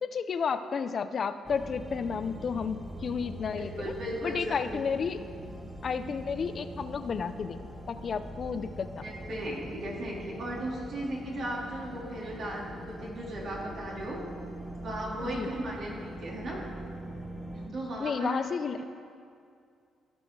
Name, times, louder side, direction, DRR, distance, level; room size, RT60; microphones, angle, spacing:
voice 1, 0.0-3.9 4.2-5.2 5.8-7.6 7.9-9.1 15.2-15.5 18.0-18.8, left 6 dB, 50° left, 10 dB, 0.5 m, -32 dB
sound 1, 1.5-17.7, right 1 dB, 5° right, 1.3 m, -43 dB
voice 2, 3.4-4.8 9.0-14.2 14.8-16.6 17.7-18.4 18.8-18.9, right 1 dB, 60° right, -3 dB, 2.9 m, -36 dB
16.0 x 6.2 x 4.7 m, 2.3 s
cardioid pair, 90°, 0 cm